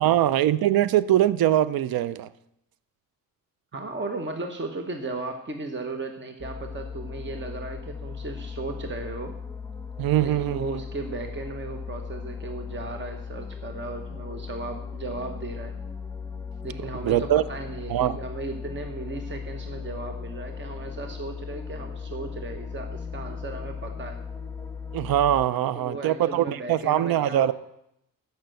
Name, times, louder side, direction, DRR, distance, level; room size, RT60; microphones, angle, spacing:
voice 1, 0.0-2.3 10.0-10.7 17.0-17.4 17.9-18.2 24.9-27.5, right 12 dB, 85° right, 18 dB, 0.5 m, -22 dB
voice 2, 3.7-9.4 10.2-15.8 16.6-24.2 25.7-27.5, right 3 dB, 35° right, 5 dB, 1.0 m, -36 dB
sound 1, 6.4-25.5, left 6 dB, 10° left, 0.8 m, -37 dB
13.0 x 5.8 x 7.7 m, 0.80 s
cardioid pair, 100°, 35 cm